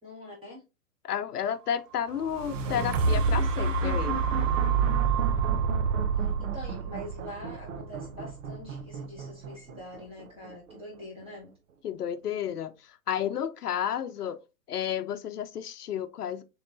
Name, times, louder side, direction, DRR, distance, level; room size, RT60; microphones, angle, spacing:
voice 1, 0.0-0.6 2.6-2.9 6.1-11.5, left 1 dB, 10° right, 2.0 m, -44 dB
voice 2, 1.0-4.2 11.8-14.4 14.7-16.4, left 9 dB, 80° left, 0.7 m, -32 dB
sound 1, 2.1-10.2 10.8-10.9, right 5 dB, 55° right, 0.8 m, -28 dB
6.3 x 3.2 x 2.5 m
hypercardioid pair, 135°, 45 cm